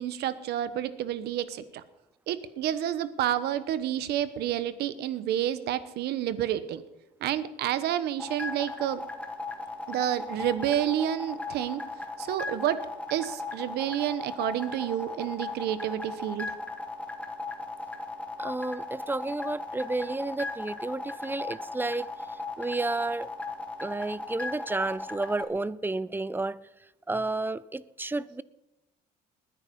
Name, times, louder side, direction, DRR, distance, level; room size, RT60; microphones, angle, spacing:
voice 1, 0.0-1.8 2.3-6.8 7.2-9.0 9.9-11.8 12.2-12.8 13.1-16.5, right 11 dB, 75° right, 13 dB, 1.2 m, -29 dB
sound 1, 8.2-25.5, left 2 dB, 10° left, 2.3 m, -37 dB
voice 2, 18.4-22.1 22.6-23.3 23.8-26.6 27.1-28.4, right 2 dB, 10° right, 18 dB, 0.5 m, -31 dB
20.0 x 9.8 x 5.5 m, 0.98 s
cardioid pair, 110°, 17 cm